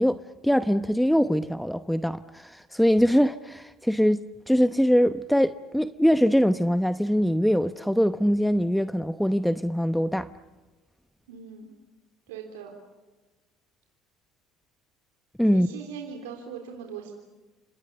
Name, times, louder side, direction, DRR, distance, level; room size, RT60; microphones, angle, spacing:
voice 1, 0.0-10.3 15.4-15.7, equal, ahead, 0.9 m, -23 dB
voice 2, 11.3-11.7 12.3-12.7 15.5-17.1, right 7 dB, 85° right, 3.6 m, -40 dB
29.5 x 26.5 x 7.0 m
hypercardioid pair, 75°, 0 cm